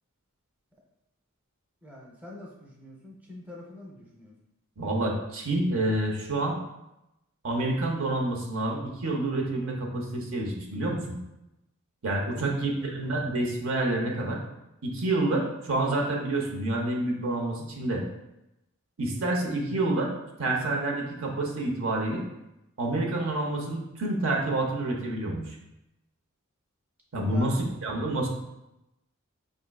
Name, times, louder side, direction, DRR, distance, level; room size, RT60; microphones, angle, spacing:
voice 1, 1.8-4.3 12.3-13.2 27.2-27.6, left 1 dB, 10° right, -3 dB, 0.7 m, -45 dB
voice 2, 4.8-6.6 7.4-11.2 12.0-14.4 14.8-18.0 19.0-20.1 20.4-22.2 22.8-25.6 27.1-28.3, right 2 dB, 65° right, 0 dB, 0.8 m, -28 dB
5.1 x 3.6 x 2.3 m, 0.91 s
head